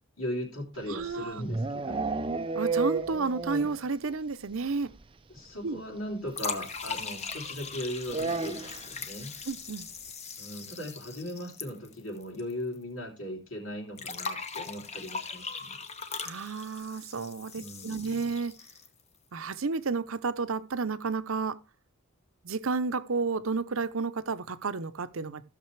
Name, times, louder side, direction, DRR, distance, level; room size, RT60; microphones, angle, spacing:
voice 1, 0.2-2.3 5.3-9.4 10.4-15.8 17.5-18.1, left 1 dB, 85° left, 3.5 m, -38 dB
sound 1, 0.8-3.9 4.1-4.2 4.6-4.7 4.9-5.0 6.3-6.4 8.1-8.9, right 3 dB, 25° right, 0.4 m, -31 dB
voice 2, 0.9-1.4 2.5-4.9 5.6-5.8 9.5-9.9 16.2-18.6 19.3-21.6 22.4-25.4, right 4 dB, 75° right, 0.7 m, -31 dB
sound 2, 6.3-12.5 12.8-12.9 14.0-19.0, left 5 dB, 30° left, 0.9 m, -40 dB
15.0 x 6.6 x 3.3 m
head